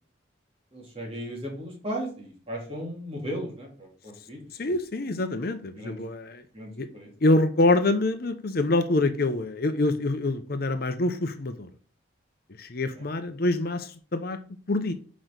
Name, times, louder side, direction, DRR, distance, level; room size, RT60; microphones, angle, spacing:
voice 1, 0.7-4.5 5.7-6.0 6.5-7.1 13.0-13.1, equal, 30° right, -1 dB, 3.2 m, -36 dB
voice 2, 4.6-6.4 6.8-6.9 7.2-11.7 12.6-14.4 14.7-14.9, left 2 dB, 50° left, 9 dB, 0.7 m, -25 dB
6.2 x 5.1 x 6.2 m, 0.41 s
head